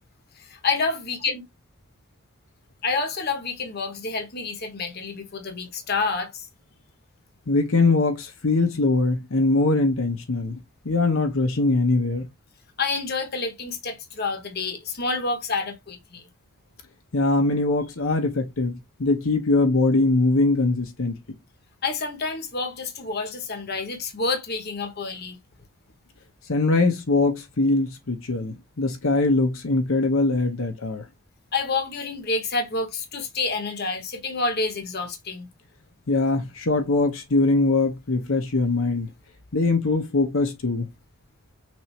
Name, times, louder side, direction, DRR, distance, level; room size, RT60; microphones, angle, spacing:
voice 1, 0.4-1.4 2.8-6.5 12.8-16.3 21.8-25.4 31.5-35.5, left 4 dB, 45° left, 1.0 m, -28 dB
voice 2, 7.5-12.3 17.1-21.2 26.5-31.0 36.1-39.1 39.5-40.9, left 3 dB, 70° left, 0.9 m, -22 dB
6.2 x 2.6 x 3.1 m
head